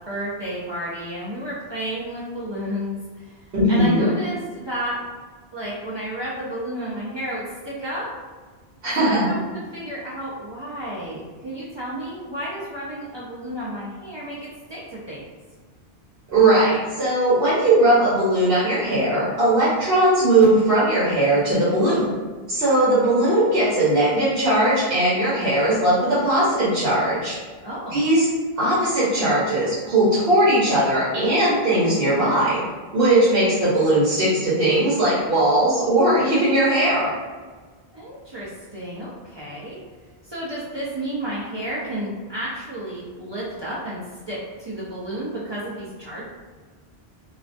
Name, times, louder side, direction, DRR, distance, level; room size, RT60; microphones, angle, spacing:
voice 1, 0.1-5.0 5.5-8.1 9.0-15.2 27.6-28.0 37.9-39.8 40.2-46.2, equal, 45° right, -8 dB, 0.3 m, -32 dB
voice 2, 3.5-4.0 8.8-9.3 16.3-22.1 22.5-27.3 27.9-28.3 28.6-32.6 32.9-37.1, right 1 dB, 70° right, -9 dB, 1.0 m, -19 dB
2.3 x 2.1 x 2.5 m, 1.4 s
omnidirectional pair, 1.1 m